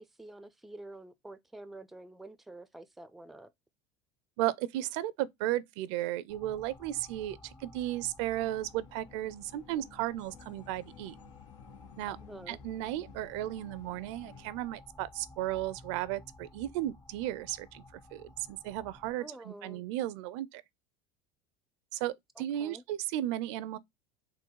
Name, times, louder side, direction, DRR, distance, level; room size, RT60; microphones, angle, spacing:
voice 1, 0.0-3.5 12.1-12.6 19.2-19.8 22.4-22.8, right 2 dB, ahead, 0.3 m, -48 dB
voice 2, 4.4-11.2 12.0-12.2 12.5-17.8 18.1-20.6 21.9-23.8, right 14 dB, 70° right, 0.4 m, -35 dB
sound 1, 6.3-19.1, left 2 dB, 20° left, 0.7 m, -54 dB
sound 2, 8.4-14.5, left 10 dB, 85° left, 0.5 m, -56 dB
3.9 x 2.2 x 4.4 m
supercardioid pair, 105°, 15 cm